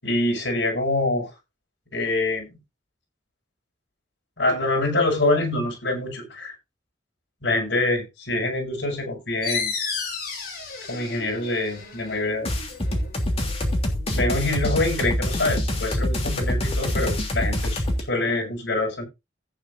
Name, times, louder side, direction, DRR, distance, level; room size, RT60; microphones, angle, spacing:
voice 1, 0.0-1.3 1.9-2.6 4.4-6.5 7.4-9.7 10.9-12.5 14.1-19.1, left 2 dB, 80° left, 5.9 m, -25 dB
sound 1, 9.4-14.7, left 5 dB, 60° left, 6.3 m, -34 dB
sound 2, 12.4-18.0, left 1 dB, 35° left, 3.1 m, -25 dB
16.0 x 9.1 x 2.6 m
head